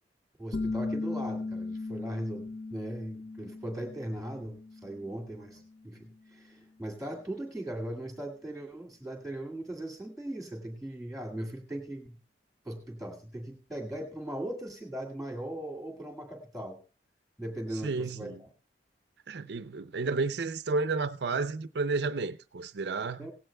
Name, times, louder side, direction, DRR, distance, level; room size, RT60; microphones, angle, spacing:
voice 1, 0.4-12.2 12.6-16.8 17.4-18.5 23.2-23.3, right 1 dB, ahead, 1.9 m, -39 dB
sound 1, 0.5-5.9, left 3 dB, 40° left, 0.5 m, -37 dB
voice 2, 17.8-18.4 19.3-23.3, right 3 dB, 65° right, 0.5 m, -31 dB
17.0 x 15.5 x 2.2 m
head